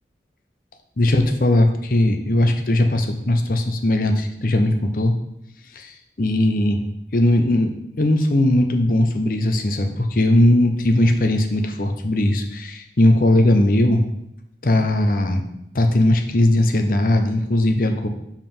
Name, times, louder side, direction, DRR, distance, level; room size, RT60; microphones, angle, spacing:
voice 1, 1.0-5.1 5.8-6.8 7.1-7.7 8.0-14.0 14.6-15.4 15.7-18.1, left 1 dB, 50° left, 5 dB, 0.7 m, -18 dB
5.4 x 5.0 x 5.4 m, 0.80 s
head